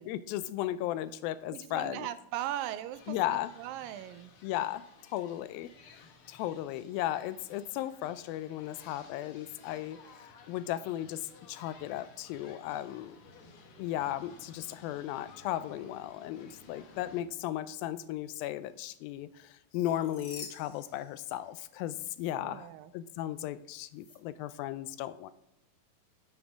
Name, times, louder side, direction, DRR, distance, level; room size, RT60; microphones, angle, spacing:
voice 1, 0.0-2.1 3.1-3.5 4.4-4.8 5.1-5.7 6.3-13.2 13.8-22.7 22.9-25.3, left 13 dB, 85° left, 14 dB, 2.4 m, -36 dB
voice 2, 1.5-4.3 22.4-22.9, right 12 dB, 80° right, 13 dB, 2.2 m, -39 dB
sound 1, 2.9-17.2, left 4 dB, 70° left, 1.3 m, -56 dB
sound 2, 19.7-21.7 22.1-22.3 23.9-24.2, left 5 dB, 45° left, 1.7 m, -49 dB
8.9 x 8.3 x 5.1 m, 0.85 s
omnidirectional pair, 4.1 m